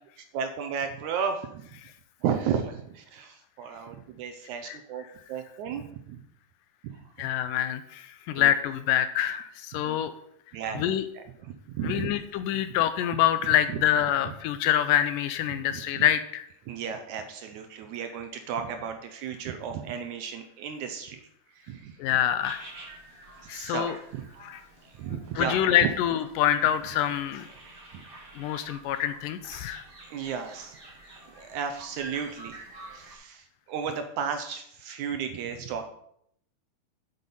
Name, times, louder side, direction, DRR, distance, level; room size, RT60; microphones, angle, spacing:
voice 1, 0.3-1.7 2.2-6.2 6.8-7.3 8.4-8.5 9.8-10.0 10.5-12.2 13.7-13.8 15.7-16.0 16.7-21.3 21.5-22.0 23.4-24.3 24.8-25.9 27.5-28.0 30.0-30.8 31.4-35.9, right 7 dB, 75° right, 7 dB, 1.8 m, -34 dB
voice 2, 7.2-10.1 10.8-11.1 11.8-16.5 22.0-22.6 23.5-24.0 24.4-24.6 25.4-27.5 28.4-29.8, left 11 dB, 80° left, 11 dB, 2.0 m, -26 dB
sound 1, 22.4-33.1, right 2 dB, 20° right, 1.7 m, -48 dB
8.4 x 8.0 x 5.5 m, 0.71 s
omnidirectional pair, 4.2 m